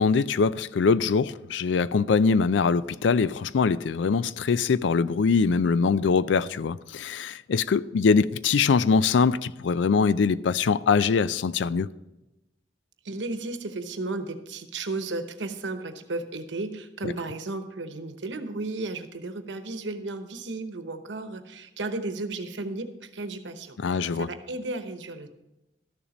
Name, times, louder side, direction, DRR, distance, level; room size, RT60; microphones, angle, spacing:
voice 1, 0.0-11.9 23.8-24.3, left 5 dB, 85° left, 0.4 m, -23 dB
voice 2, 13.0-25.3, right 2 dB, 90° right, 1.0 m, -34 dB
13.0 x 7.1 x 5.1 m
head